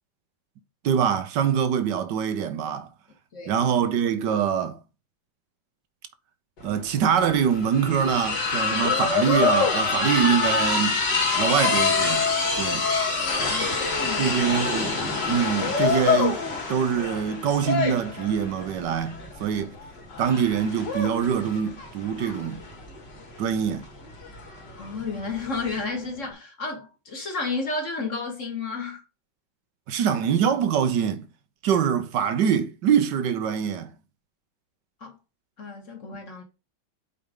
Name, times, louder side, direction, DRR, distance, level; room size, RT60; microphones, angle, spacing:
voice 1, 0.8-2.9 3.5-4.8 6.6-11.0 11.4-12.3 12.6-12.9 14.2-14.9 15.2-16.4 16.7-19.7 20.2-22.6 23.4-23.8 29.9-31.2 31.6-33.9, right 8 dB, 65° right, 1.4 m, -24 dB
voice 2, 3.3-3.7 13.3-14.4 20.2-20.4 24.8-29.0 35.0-35.1 35.6-36.4, left 3 dB, 35° left, 2.2 m, -32 dB
sound 1, 6.6-6.7 7.0-25.8, left 4 dB, 55° left, 3.0 m, -26 dB
8.0 x 4.9 x 3.8 m
omnidirectional pair, 2.3 m